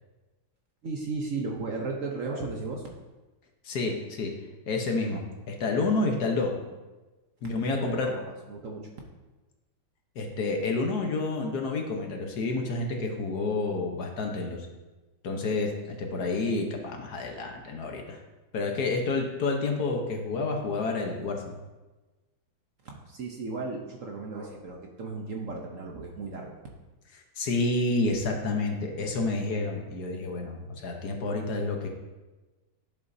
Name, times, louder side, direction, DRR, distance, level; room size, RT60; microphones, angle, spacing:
voice 1, 0.8-2.8 7.4-8.9 22.8-26.5, right 3 dB, 55° right, 0 dB, 1.0 m, -35 dB
voice 2, 3.6-4.3 4.7-6.5 7.4-8.1 10.1-14.7 15.2-18.2 18.5-21.6 27.4-31.9, left 3 dB, 60° left, 2 dB, 1.4 m, -29 dB
10.5 x 6.9 x 2.7 m, 1.2 s
omnidirectional pair, 2.0 m